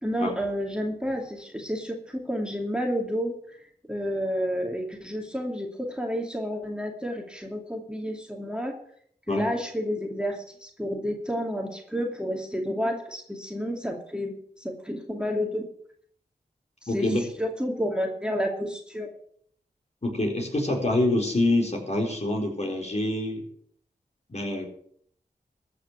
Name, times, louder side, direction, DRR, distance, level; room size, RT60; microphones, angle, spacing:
voice 1, 0.0-3.3 3.9-8.7 9.3-15.7 16.8-19.1, equal, 5° right, 1 dB, 2.5 m, -30 dB
voice 2, 16.9-17.2 20.0-23.4 24.3-24.7, left 1 dB, 40° left, 0 dB, 4.1 m, -26 dB
14.0 x 6.0 x 8.1 m, 0.63 s
cardioid pair, 45°, 17 cm